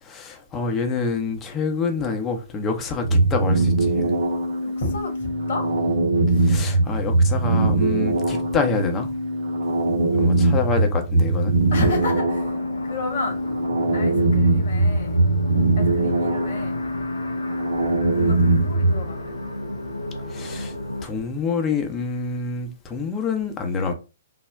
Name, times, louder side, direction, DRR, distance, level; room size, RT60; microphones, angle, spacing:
voice 1, 0.0-4.2 6.4-9.1 10.1-11.6 20.3-20.7 21.0-23.9, left 4 dB, 20° left, 0.6 m, -27 dB
sound 1, 3.0-19.1, right 2 dB, 65° right, 0.6 m, -21 dB
voice 2, 4.6-5.7 6.3-6.5 9.8-10.4 11.7-12.5 12.8-13.4 13.9-15.2 15.8-16.8 18.1-19.4, left 2 dB, 55° left, 1.2 m, -31 dB
sound 2, 5.2-11.1, right 5 dB, 20° right, 0.6 m, -40 dB
sound 3, 11.7-21.1, left 2 dB, 80° left, 0.5 m, -33 dB
3.4 x 2.1 x 2.3 m
figure-of-eight pair, 120°, 0 cm